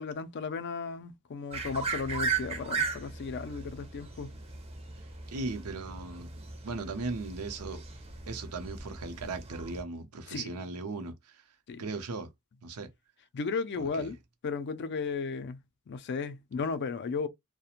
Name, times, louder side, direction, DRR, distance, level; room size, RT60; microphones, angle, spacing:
voice 1, 0.0-4.4 10.3-10.5 11.7-11.9 13.3-14.2 14.4-15.6 15.9-17.3, left 4 dB, 50° left, 0.4 m, -35 dB
sound 1, 1.5-9.8, right 5 dB, 25° right, 0.5 m, -37 dB
voice 2, 5.3-6.3 6.6-7.8 8.3-11.4 11.8-12.3 12.6-12.9 13.8-14.1, right 3 dB, 85° right, 0.6 m, -37 dB
2.4 x 2.1 x 2.8 m
head